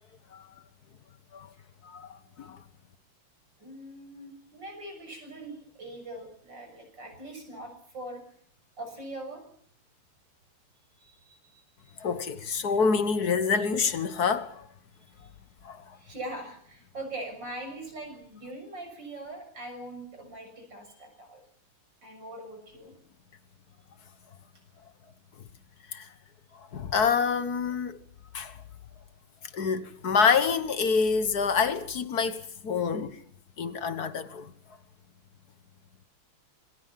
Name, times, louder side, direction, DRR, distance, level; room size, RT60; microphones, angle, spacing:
voice 1, 1.8-2.6 12.0-14.7 15.6-16.0 25.9-26.1 26.7-28.0 28.3-28.6 29.5-33.2 33.6-34.5, left 5 dB, 50° left, 1.5 m, -27 dB
voice 2, 3.6-8.2 8.8-9.4 11.0-12.0 15.1-15.3 15.9-21.4 22.0-22.9, right 1 dB, 55° right, 7.5 m, -42 dB
26.0 x 22.5 x 5.8 m
omnidirectional pair, 2.4 m